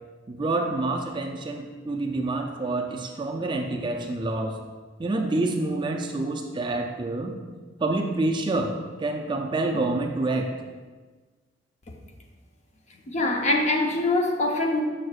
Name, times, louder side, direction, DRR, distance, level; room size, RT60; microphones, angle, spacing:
voice 1, 0.3-4.6 5.0-7.4 7.8-10.5, right 2 dB, 25° right, 3 dB, 0.4 m, -27 dB
voice 2, 13.1-14.8, left 2 dB, 35° left, 2 dB, 0.6 m, -23 dB
6.6 x 6.2 x 2.4 m, 1.4 s
head